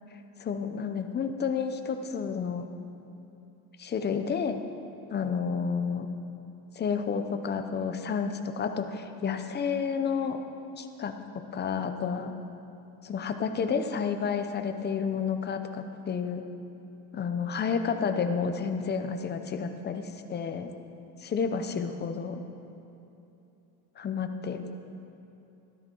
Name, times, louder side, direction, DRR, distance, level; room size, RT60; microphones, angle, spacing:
voice 1, 0.4-2.7 3.8-4.6 5.1-6.1 6.7-10.4 10.8-11.1 11.5-12.3 13.0-16.5 17.1-20.7 21.2-22.4 24.0-24.6, left 6 dB, 25° left, 7 dB, 0.7 m, -30 dB
13.5 x 12.5 x 4.6 m, 3.0 s
cardioid pair, 145°, 42 cm